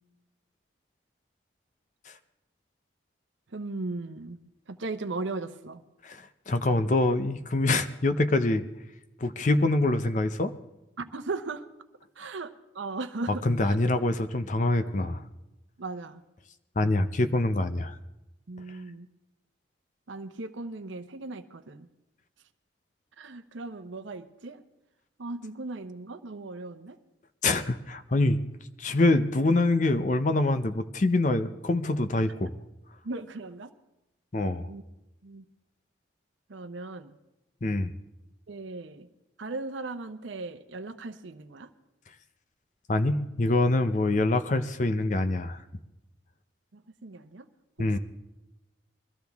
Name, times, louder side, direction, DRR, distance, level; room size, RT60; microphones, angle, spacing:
voice 1, 3.5-4.4 4.7-5.8 11.0-11.6 12.2-13.8 15.8-16.2 18.5-19.1 20.1-21.9 23.2-24.6 25.2-27.0 33.0-33.7 34.6-34.8 35.2-35.4 36.5-37.1 38.5-39.1 39.4-41.7 46.7-47.5 47.8-48.0, right 3 dB, 85° right, 8 dB, 0.7 m, -37 dB
voice 2, 6.0-8.6 9.2-10.5 13.4-15.2 16.8-18.0 27.4-28.4 28.8-32.5 34.3-34.7 37.6-37.9 42.9-45.6 47.8-48.0, left 2 dB, 40° left, 10 dB, 0.6 m, -25 dB
22.0 x 14.0 x 3.5 m, 0.96 s
head